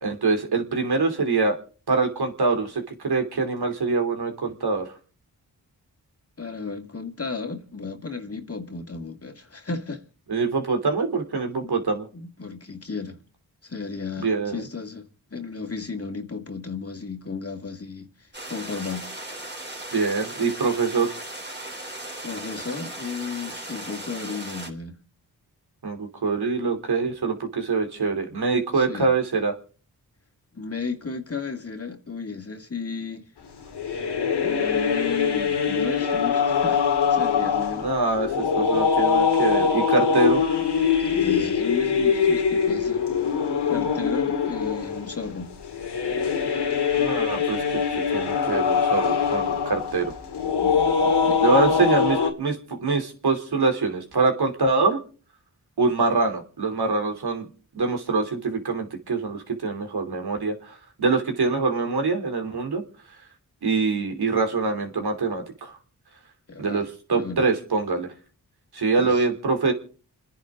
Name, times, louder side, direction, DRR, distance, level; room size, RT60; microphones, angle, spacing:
voice 1, 0.0-1.6 1.9-4.9 10.3-12.1 14.2-14.6 19.9-21.1 25.8-29.5 37.8-40.4 46.9-47.6 47.9-50.1 51.4-55.0 55.8-57.5 57.7-62.8 63.6-65.8 66.6-68.1 68.7-69.7, right 4 dB, 70° right, 3.2 m, -24 dB
voice 2, 6.4-10.0 11.6-11.7 12.1-13.2 13.6-19.1 22.2-25.0 28.7-29.1 30.5-33.3 34.4-37.9 40.7-43.0 43.6-45.5 50.6-51.4 51.8-51.9 66.5-67.4 69.0-69.2, left 4 dB, 35° left, 2.1 m, -34 dB
sound 1, 18.3-24.7, right 1 dB, 25° right, 3.5 m, -37 dB
sound 2, 33.6-52.3, left 6 dB, 90° left, 2.2 m, -23 dB
30.0 x 10.0 x 3.7 m
cardioid pair, 40°, 40 cm